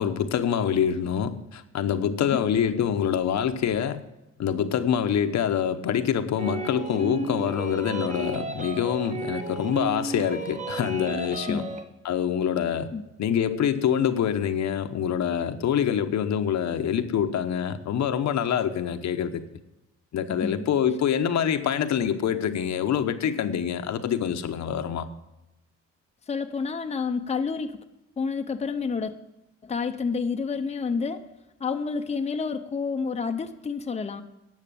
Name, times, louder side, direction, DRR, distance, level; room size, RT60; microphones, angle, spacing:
voice 1, 0.0-4.0 4.4-11.7 12.0-12.9 13.2-19.4 20.1-25.1, left 8 dB, 65° left, 8 dB, 0.9 m, -25 dB
sound 1, 6.4-11.9, right 2 dB, 25° right, 1.3 m, -33 dB
voice 2, 20.3-20.6 26.3-27.8 28.2-29.1 29.6-31.3 31.6-34.2, left 5 dB, 20° left, 7 dB, 0.7 m, -29 dB
10.5 x 6.5 x 8.5 m, 0.95 s
cardioid pair, 90°, 30 cm